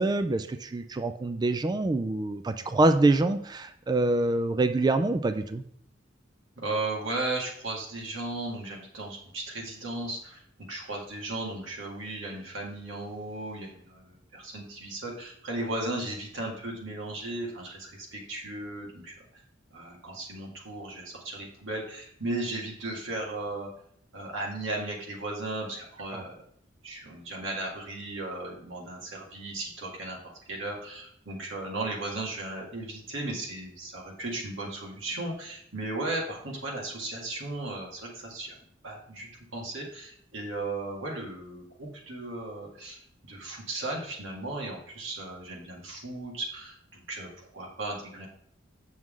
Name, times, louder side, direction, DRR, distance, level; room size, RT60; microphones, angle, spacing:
voice 1, 0.0-5.6 26.1-26.2, right 2 dB, 20° right, 9 dB, 0.3 m, -25 dB
voice 2, 6.6-19.4 19.7-23.7 24.1-26.3 26.8-38.5 38.8-48.3, right 2 dB, 80° right, -1 dB, 1.9 m, -36 dB
7.6 x 6.2 x 3.6 m, 0.66 s
head